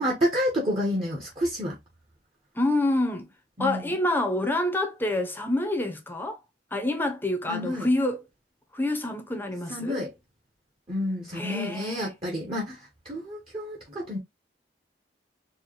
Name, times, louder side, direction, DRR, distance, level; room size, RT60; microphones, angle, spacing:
voice 1, 0.0-1.8 3.6-3.9 7.5-7.9 9.7-10.1 10.9-14.2, equal, 30° right, 1.1 m, -29 dB
voice 2, 2.5-3.3 3.6-6.4 6.7-8.2 8.7-10.0 11.3-12.1, left 1 dB, 10° left, 0.7 m, -27 dB
4.4 x 2.3 x 3.1 m
head